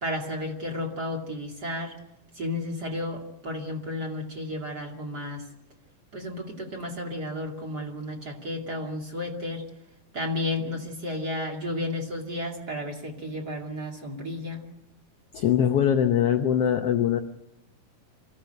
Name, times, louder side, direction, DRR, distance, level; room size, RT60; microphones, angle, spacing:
voice 1, 0.0-1.9 2.3-5.5 6.1-9.6 10.1-14.6, left 1 dB, 30° right, 1 dB, 2.6 m, -32 dB
voice 2, 15.3-17.2, left 9 dB, 70° left, 6 dB, 1.4 m, -22 dB
25.5 x 16.0 x 7.9 m, 0.85 s
omnidirectional pair, 3.9 m